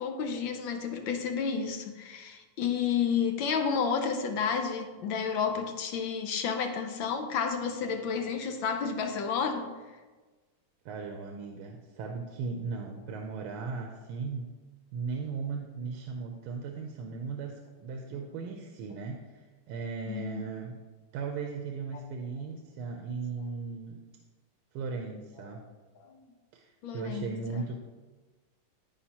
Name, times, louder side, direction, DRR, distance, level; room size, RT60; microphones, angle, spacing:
voice 1, 0.0-9.7 20.1-20.4 21.9-22.0 25.4-25.6 26.0-26.2 26.8-27.7, left 6 dB, 70° left, 5 dB, 1.5 m, -31 dB
voice 2, 10.8-14.5 14.9-19.4 19.7-20.8 21.1-24.0 24.7-25.6 26.5-27.7, right 5 dB, 90° right, 2 dB, 1.6 m, -37 dB
14.0 x 4.8 x 2.9 m, 1.3 s
omnidirectional pair, 2.4 m